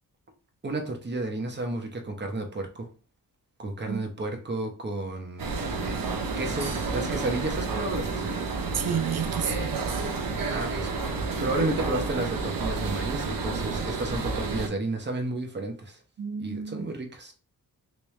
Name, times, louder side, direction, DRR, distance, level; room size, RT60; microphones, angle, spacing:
voice 1, 0.6-2.9 3.6-5.5 6.4-8.5 10.5-10.9 11.4-16.0 16.4-17.3, right 2 dB, 30° right, 0.9 m, -32 dB
sound 1, 5.4-14.7, right 4 dB, 65° right, 0.8 m, -30 dB
voice 2, 8.7-9.9 16.2-16.8, right 7 dB, 45° right, 0.5 m, -31 dB
3.1 x 3.0 x 3.2 m
wide cardioid pair, 100°, 36 cm